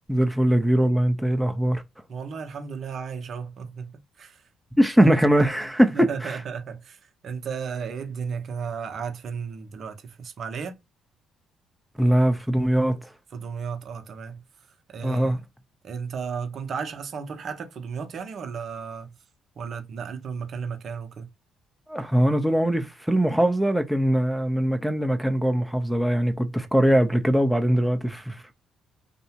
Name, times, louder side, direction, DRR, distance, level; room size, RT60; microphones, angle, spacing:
voice 1, 0.1-1.8 4.8-6.4 12.0-13.0 15.0-15.4 21.9-28.5, right 1 dB, 5° right, 0.6 m, -21 dB
voice 2, 2.1-4.4 5.0-5.1 5.8-10.8 13.3-14.4 14.9-15.3 15.8-19.1 19.6-21.3 27.8-28.0, right 6 dB, 60° right, 0.8 m, -34 dB
2.7 x 2.1 x 2.8 m
hypercardioid pair, 55°, 0 cm